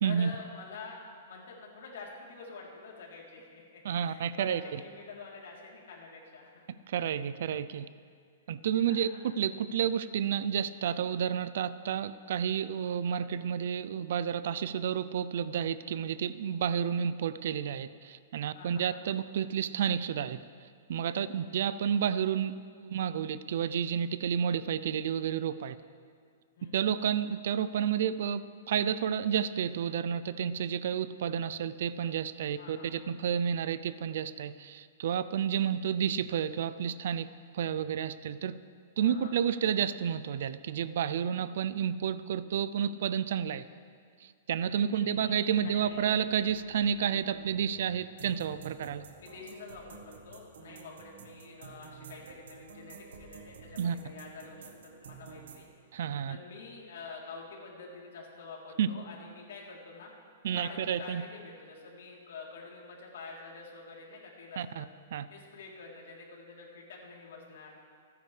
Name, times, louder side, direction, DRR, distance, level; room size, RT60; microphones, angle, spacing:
voice 1, 0.0-1.0 1.3-6.7 8.7-9.2 18.5-19.0 21.2-21.6 26.6-26.9 32.6-32.9 39.0-39.5 44.8-45.4 45.6-46.2 49.2-55.7 56.3-60.1 60.5-64.9 65.3-67.8, left 4 dB, 70° left, -3 dB, 3.5 m, -47 dB
voice 2, 3.8-4.6 6.9-7.9 8.5-9.1 9.4-20.4 20.9-25.8 26.7-37.3 37.5-38.6 39.0-43.7 44.2-49.0 53.8-54.0 55.9-56.4 58.8-58.9 60.4-61.2 64.6-64.8 65.1-65.3, right 8 dB, 60° right, 15 dB, 0.5 m, -30 dB
sound 1, 45.5-55.6, right 6 dB, 75° right, 1.5 m, -51 dB
27.5 x 9.7 x 3.4 m, 2.1 s
hypercardioid pair, 170°, 0 cm